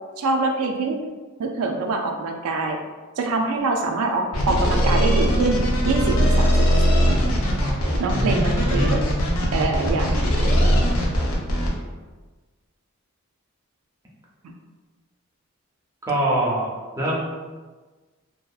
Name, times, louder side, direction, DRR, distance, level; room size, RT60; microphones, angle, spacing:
voice 1, 0.2-1.0 1.4-2.8 3.2-7.2 8.0-9.0 9.5-10.5, right 3 dB, 85° right, 3 dB, 0.3 m, -25 dB
sound 1, 4.3-11.7, equal, 80° left, 0.6 m, -20 dB
voice 2, 8.1-8.9 16.0-16.7 17.0-17.2, right 1 dB, 15° right, -5 dB, 0.5 m, -24 dB
2.7 x 2.2 x 2.3 m, 1.3 s
head